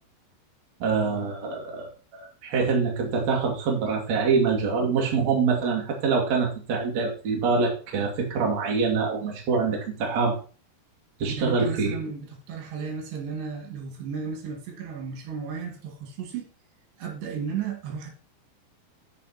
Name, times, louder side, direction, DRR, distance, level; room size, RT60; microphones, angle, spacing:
voice 1, 0.8-10.3 11.2-11.9, right 5 dB, 45° right, -1 dB, 3.2 m, -25 dB
voice 2, 11.4-16.5 17.0-18.1, right 6 dB, 75° right, 1 dB, 4.4 m, -34 dB
15.0 x 5.1 x 4.3 m, 0.38 s
omnidirectional pair, 4.9 m